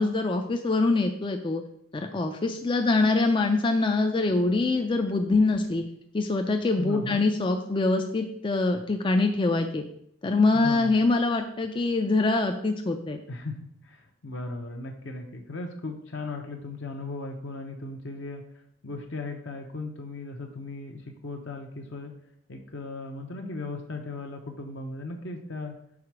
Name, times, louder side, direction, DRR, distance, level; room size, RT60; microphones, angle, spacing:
voice 1, 0.0-1.6 1.9-5.8 6.1-9.8 10.2-13.2, left 3 dB, 25° left, 5 dB, 0.3 m, -24 dB
voice 2, 6.8-7.3 10.5-11.0 13.3-18.4 18.8-22.1 22.5-25.7, left 3 dB, 60° left, 2 dB, 0.7 m, -37 dB
4.9 x 4.1 x 5.9 m, 0.70 s
head